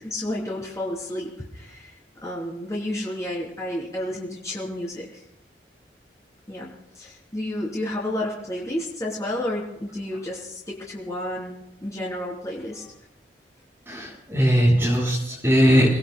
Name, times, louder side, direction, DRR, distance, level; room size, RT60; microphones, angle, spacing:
voice 1, 0.0-1.9 2.2-5.2 6.5-12.9, left 1 dB, 20° left, -4 dB, 3.3 m, -31 dB
voice 2, 13.9-16.0, equal, 15° right, -5 dB, 7.7 m, -19 dB
29.5 x 20.5 x 2.3 m, 0.89 s
head